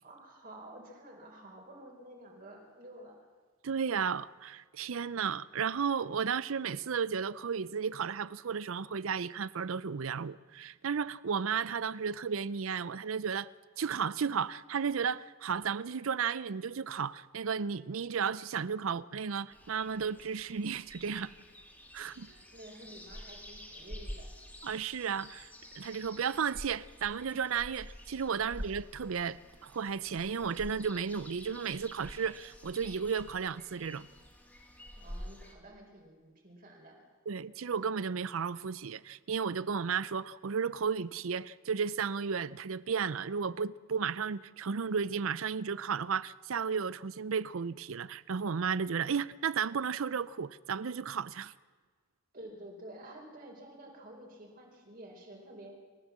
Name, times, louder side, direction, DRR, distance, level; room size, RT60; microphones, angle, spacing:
voice 1, 0.0-3.1 21.4-21.5 22.0-24.3 34.9-37.0 52.3-55.7, right 1 dB, 40° right, 4.4 m, -50 dB
voice 2, 3.6-13.5 13.8-21.3 21.9-22.3 24.6-25.5 25.8-34.1 37.3-51.5, right 6 dB, 75° right, 0.5 m, -33 dB
sound 1, 19.5-35.5, equal, 5° left, 3.1 m, -48 dB
28.5 x 14.5 x 7.4 m
head